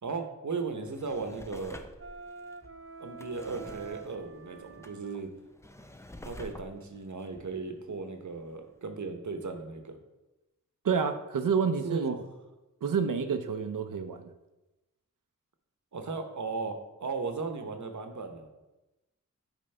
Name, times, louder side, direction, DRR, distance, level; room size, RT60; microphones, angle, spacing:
voice 1, 0.0-1.8 3.0-5.3 6.2-10.0 11.8-12.2 15.9-18.5, right 4 dB, 65° right, 6 dB, 0.9 m, -36 dB
Drawer open or close, 0.6-8.3 8.8-8.9, left 1 dB, 10° left, 0.4 m, -49 dB
Wind instrument woodwind instrument, 2.0-5.3, right 5 dB, 45° right, 0.5 m, -47 dB
voice 2, 10.8-12.1 12.8-14.3, right 6 dB, 85° right, 8 dB, 0.6 m, -28 dB
8.9 x 5.1 x 3.3 m, 1.0 s
wide cardioid pair, 80°, 31 cm